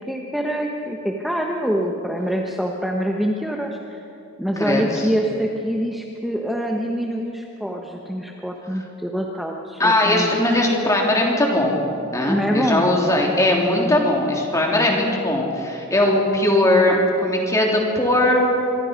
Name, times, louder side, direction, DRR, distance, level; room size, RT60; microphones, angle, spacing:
voice 1, 0.1-4.0 4.4-10.3 12.2-12.8, equal, ahead, 0 dB, 1.1 m, -25 dB
voice 2, 4.6-5.1 9.8-11.8 12.1-18.5, left 1 dB, 15° left, -1 dB, 3.3 m, -19 dB
25.5 x 22.5 x 5.3 m, 2.8 s
head